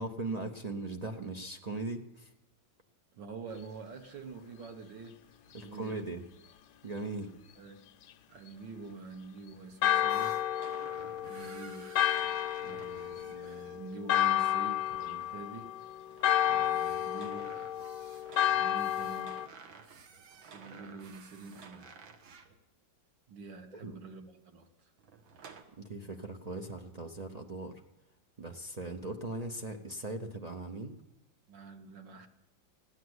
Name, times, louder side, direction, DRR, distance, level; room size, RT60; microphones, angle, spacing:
voice 1, 0.0-2.3 5.5-6.2 6.8-7.3 23.7-24.0 25.8-27.8 28.4-31.0, right 2 dB, 45° right, 3 dB, 0.5 m, -39 dB
voice 2, 3.1-5.2 5.6-6.3 7.6-7.9 8.3-10.4 11.2-11.9 12.6-15.7 16.5-17.5 18.5-19.4 20.5-21.9 23.3-24.9 31.5-32.3, right 4 dB, 70° right, 5 dB, 1.9 m, -46 dB
Church bell, 9.8-19.5, left 12 dB, 70° left, 1.1 m, -31 dB
sound 1, 10.1-13.8 16.0-22.6 25.0-25.6, right 5 dB, 85° right, 1.9 m, -52 dB
15.5 x 10.5 x 7.9 m, 0.96 s
omnidirectional pair, 2.1 m